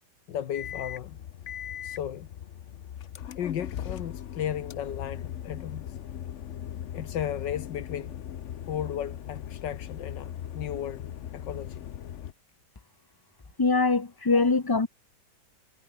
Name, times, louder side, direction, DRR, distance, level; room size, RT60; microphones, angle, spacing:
voice 1, 0.3-1.2 1.8-2.3 3.4-6.0 6.9-8.2 8.7-11.9 14.3-14.5, left 10 dB, 90° left, 1.9 m, -35 dB
sound 1, 0.5-12.3, left 10 dB, 55° left, 0.9 m, -39 dB
voice 2, 13.6-14.9, left 3 dB, 25° left, 0.5 m, -23 dB
omnidirectional pair, 1.9 m